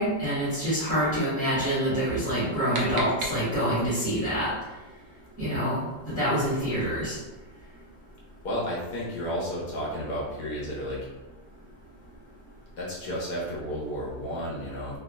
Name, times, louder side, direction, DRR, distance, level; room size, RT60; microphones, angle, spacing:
voice 1, 0.0-4.5 5.4-7.2, equal, 10° right, -14 dB, 1.4 m, -26 dB
sound 1, 2.2-3.9, right 1 dB, 55° right, 0.8 m, -36 dB
voice 2, 8.4-11.0 12.8-15.0, equal, 80° left, -6 dB, 1.6 m, -32 dB
3.6 x 3.0 x 2.4 m, 1.1 s
omnidirectional pair, 1.5 m